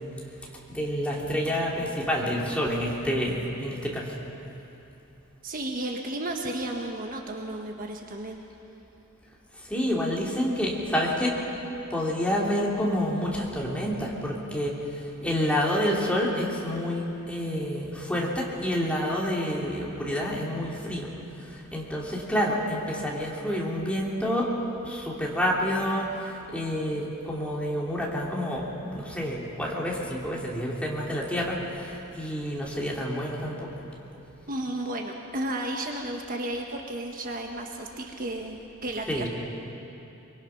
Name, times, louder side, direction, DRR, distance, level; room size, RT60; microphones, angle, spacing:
voice 1, 0.7-3.3 3.6-4.2 9.7-11.4 11.9-14.8 15.2-21.1 21.5-24.5 24.8-33.8 39.1-39.3, equal, 5° left, -4 dB, 3.2 m, -28 dB
voice 2, 5.4-8.4 34.5-39.3, right 1 dB, 40° right, 2 dB, 1.3 m, -33 dB
24.0 x 23.5 x 5.9 m, 2.9 s
head